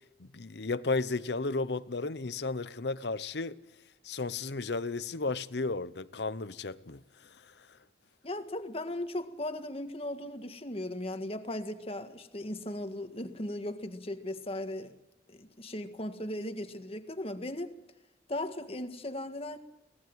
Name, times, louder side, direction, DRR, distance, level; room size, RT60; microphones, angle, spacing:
voice 1, 0.2-3.6 4.0-7.0, left 3 dB, 65° left, 0.9 m, -33 dB
voice 2, 8.2-14.9 15.3-17.7 18.3-19.6, left 1 dB, 35° left, 1.8 m, -37 dB
24.0 x 19.0 x 7.8 m
head